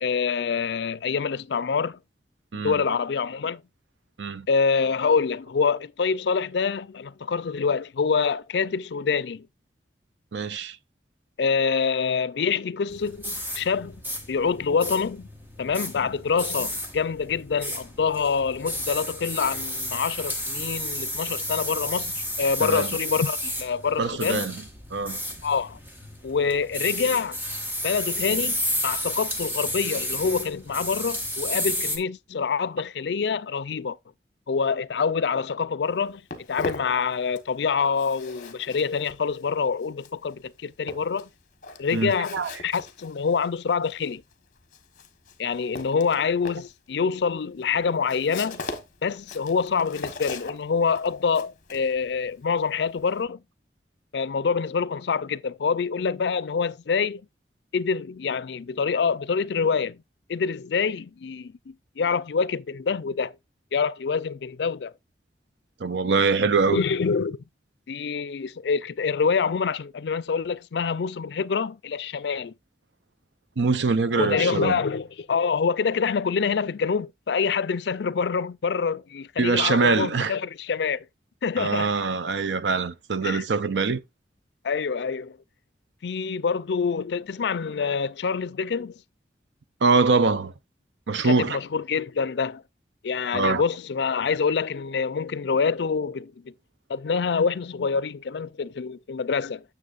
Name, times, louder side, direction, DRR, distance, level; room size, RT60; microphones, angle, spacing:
voice 1, 0.0-2.0 2.6-3.6 4.5-9.5 11.4-14.0 14.3-15.3 15.6-24.5 25.4-25.8 26.2-27.4 27.8-34.0 34.5-36.2 36.5-41.3 41.8-42.4 42.6-44.2 45.4-48.6 49.0-53.4 54.1-57.2 57.7-60.0 60.3-63.3 63.7-64.9 66.7-67.4 67.9-72.5 74.1-81.0 81.4-81.9 83.2-83.4 84.6-85.4 86.0-88.9 91.2-92.6 93.0-96.5 96.9-99.6, left 5 dB, 80° left, 0.4 m, -26 dB
voice 2, 10.3-10.8 22.6-22.9 24.0-24.6 24.9-25.2 41.9-42.5 65.8-66.8 73.6-74.8 79.4-80.3 81.6-84.0 89.8-90.5 91.1-91.6 93.3-93.6, right 4 dB, 90° right, 0.6 m, -23 dB
sound 1, 12.9-32.0, equal, 10° right, 1.5 m, -32 dB
Walk footsteps, 35.9-37.6 37.8-53.2, left 3 dB, 45° left, 1.2 m, -40 dB
9.7 x 6.8 x 2.5 m
head